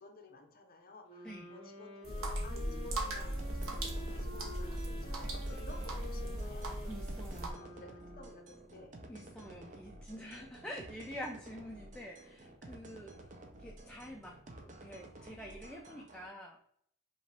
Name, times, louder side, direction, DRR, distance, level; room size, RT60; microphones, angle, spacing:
voice 1, 0.0-6.7 7.6-8.9, left 2 dB, 45° left, 5 dB, 0.7 m, -54 dB
sound 1, 1.0-8.8, left 2 dB, 30° left, 1.3 m, -50 dB
sound 2, 2.0-7.5, right 1 dB, 80° right, 0.9 m, -38 dB
sound 3, 3.4-16.3, right 1 dB, 40° right, 0.6 m, -52 dB
voice 2, 6.9-7.5 9.1-14.4 14.6-16.6, equal, 5° left, 0 dB, 0.4 m, -47 dB
5.2 x 2.5 x 3.3 m, 0.66 s
head